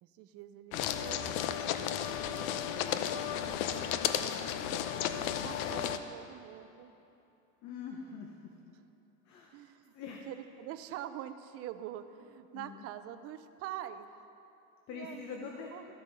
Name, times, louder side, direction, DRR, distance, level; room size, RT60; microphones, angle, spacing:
voice 1, 0.0-1.4 3.1-4.8 5.4-6.9 9.5-9.9 10.3-14.1 14.9-15.9, right 11 dB, 35° right, 11 dB, 0.5 m, -45 dB
sound 1, 0.7-6.0, left 9 dB, 85° left, 0.7 m, -33 dB
voice 2, 7.6-8.4 9.2-9.6 9.9-10.3 12.5-12.8 14.9-15.7, left 6 dB, 45° left, 1 dB, 1.0 m, -43 dB
13.0 x 8.2 x 5.4 m, 3.0 s
cardioid pair, 155°, 40 cm